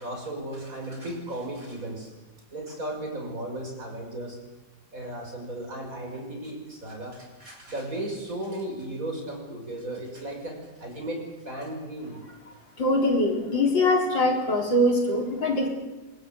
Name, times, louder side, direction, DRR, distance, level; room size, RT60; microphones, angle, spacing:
voice 1, 0.0-2.1 2.5-4.4 4.9-12.2, right 1 dB, 45° right, 1 dB, 6.7 m, -35 dB
voice 2, 12.8-15.7, left 1 dB, 80° left, 1 dB, 4.8 m, -23 dB
24.5 x 21.5 x 8.2 m, 1.1 s
omnidirectional pair, 2.0 m